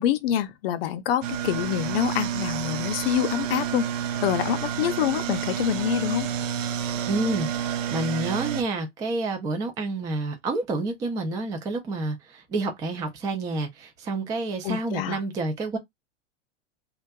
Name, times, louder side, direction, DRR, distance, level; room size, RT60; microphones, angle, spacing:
voice 1, 0.0-3.9 4.2-6.3 14.6-15.2, left 10 dB, 50° left, 0.5 m, -26 dB
sound 1, 1.2-8.6, right 9 dB, 80° right, 0.5 m, -29 dB
voice 2, 7.1-15.8, right 2 dB, 10° right, 0.3 m, -29 dB
2.5 x 2.2 x 2.3 m
hypercardioid pair, 105°, 38 cm